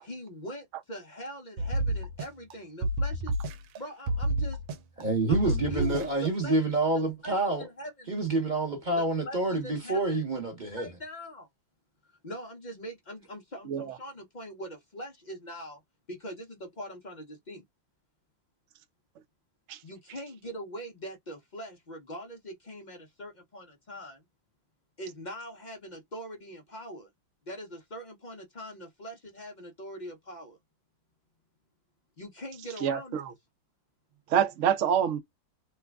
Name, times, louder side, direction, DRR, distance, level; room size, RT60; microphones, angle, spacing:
voice 1, 0.0-3.3 3.8-4.6 5.3-6.6 7.2-8.1 8.9-10.2 10.7-11.5 12.2-15.8 16.1-17.6 19.8-24.2 25.0-27.1 27.5-30.6 32.2-33.2, equal, 75° left, 0.4 m, -42 dB
sound 1, 1.6-2.5 2.8-3.8 4.1-5.0 5.3-6.3, right 1 dB, 85° right, 1.4 m, -29 dB
voice 2, 5.0-7.7 8.1-10.9, right 2 dB, 35° right, 0.8 m, -28 dB
voice 3, 13.7-14.0 19.7-19.8 32.8-33.3 34.3-35.2, right 9 dB, 70° right, 0.7 m, -26 dB
3.2 x 2.3 x 3.4 m
omnidirectional pair, 2.1 m